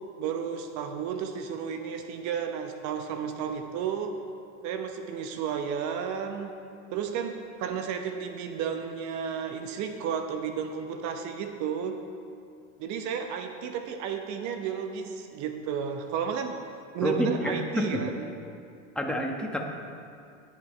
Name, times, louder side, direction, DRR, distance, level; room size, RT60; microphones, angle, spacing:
voice 1, 0.2-4.2 4.6-6.5 6.9-12.0 12.8-16.6 16.9-18.3, right 7 dB, 50° right, 6 dB, 1.0 m, -32 dB
voice 2, 17.0-18.0 18.9-19.6, equal, ahead, 1 dB, 1.5 m, -28 dB
21.0 x 7.1 x 3.3 m, 2.4 s
hypercardioid pair, 90°, 38 cm